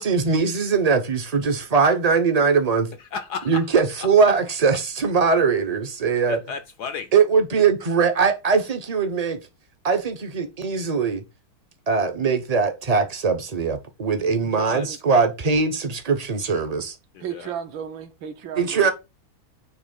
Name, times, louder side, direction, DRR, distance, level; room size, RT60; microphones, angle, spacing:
voice 1, 0.0-2.9 3.5-6.4 7.1-9.4 9.8-11.2 11.9-16.9 18.6-18.9, right 5 dB, 35° right, 0.6 m, -21 dB
voice 2, 3.1-4.1 6.3-7.1 14.6-14.9 17.1-17.5, left 6 dB, 65° left, 1.0 m, -34 dB
voice 3, 14.6-15.0 17.2-18.9, right 8 dB, 70° right, 1.7 m, -34 dB
9.5 x 3.2 x 5.3 m
omnidirectional pair, 2.2 m